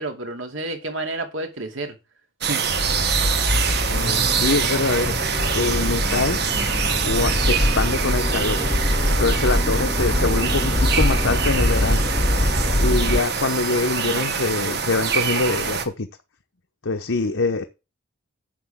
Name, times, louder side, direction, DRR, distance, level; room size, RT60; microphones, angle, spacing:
voice 1, 0.0-2.0 2.4-2.6, right 2 dB, 80° right, 5 dB, 2.5 m, -30 dB
sound 1, 2.4-15.8, right 6 dB, 55° right, 1.5 m, -25 dB
Accelerating revving vroom, 2.7-13.2, left 1 dB, 25° left, 0.8 m, -23 dB
voice 2, 3.9-5.1 5.5-6.4 7.0-8.6 9.1-12.0 12.8-16.1 16.8-17.6, left 3 dB, 75° left, 5 dB, 0.9 m, -24 dB
10.0 x 7.5 x 3.7 m, 0.27 s
head